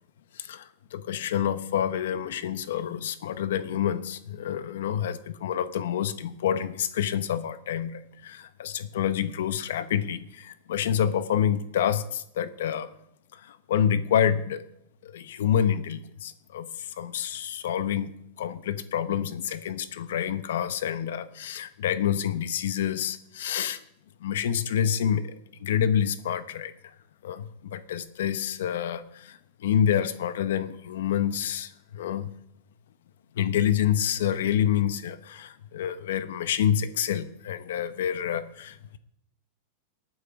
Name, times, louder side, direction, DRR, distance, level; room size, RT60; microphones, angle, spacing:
voice 1, 0.9-12.9 13.7-14.6 15.1-16.7 17.0-18.1 18.4-23.8 24.2-25.3 25.6-26.7 27.2-29.3 29.6-32.3 33.4-39.0, left 9 dB, 80° left, 12 dB, 1.0 m, -27 dB
18.5 x 9.3 x 3.7 m, 0.76 s
supercardioid pair, 155°, 0 cm